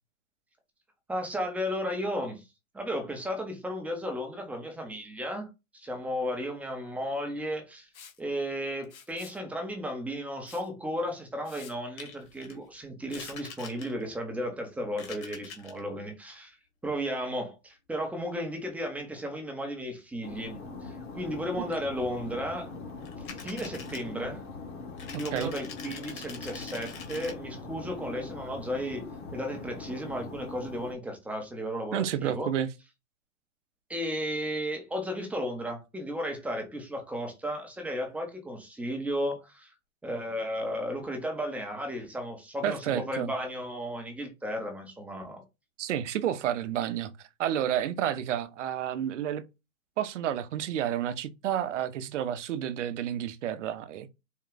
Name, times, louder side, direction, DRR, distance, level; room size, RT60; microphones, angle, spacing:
voice 1, 1.1-2.4 2.7-5.5 5.7-7.9 8.2-16.6 16.8-22.7 23.4-24.4 25.1-32.5 33.9-39.7 40.0-45.4, equal, 5° right, 0.7 m, -34 dB
Liquid, 7.9-8.2 8.8-9.4 10.5-10.7 11.1-11.2 11.4-11.7 13.1-13.4, left 7 dB, 70° left, 1.3 m, -49 dB
sound 1, 12.0-12.5 13.1-14.1 14.9-15.8 23.0-24.1 25.0-27.3, left 6 dB, 25° left, 1.3 m, -44 dB
sound 2, 20.2-30.9, left 3 dB, 55° left, 1.6 m, -42 dB
voice 2, 31.9-32.7 42.6-43.3 45.8-49.5 50.0-54.1, right 10 dB, 60° right, 0.7 m, -30 dB
4.4 x 2.3 x 3.8 m
hypercardioid pair, 135°, 42 cm